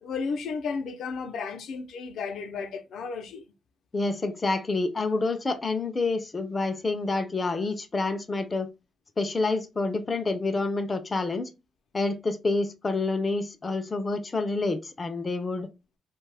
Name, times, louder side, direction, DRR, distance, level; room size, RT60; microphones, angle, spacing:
voice 1, 0.0-3.4, left 5 dB, 75° left, 0.5 m, -33 dB
voice 2, 3.9-8.7 9.2-11.5 11.9-15.7, left 3 dB, 25° left, 0.4 m, -28 dB
2.7 x 2.2 x 3.3 m
cardioid pair, 145°, 0 cm